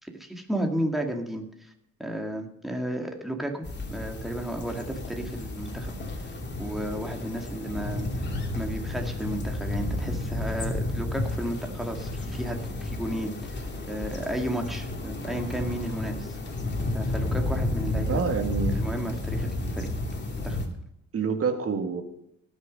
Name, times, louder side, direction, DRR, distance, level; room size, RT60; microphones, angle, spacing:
voice 1, 0.0-1.7 2.0-3.6 3.9-5.9 6.2-16.4 16.9-18.3 18.8-19.9 20.4-20.6, right 1 dB, ahead, 2 dB, 2.1 m, -33 dB
sound 1, 3.6-20.7, left 2 dB, 35° left, 2.6 m, -31 dB
voice 2, 18.1-18.8 21.1-22.0, right 6 dB, 50° right, 6 dB, 2.0 m, -27 dB
18.5 x 6.6 x 5.3 m, 0.80 s
cardioid pair, 90°, 30 cm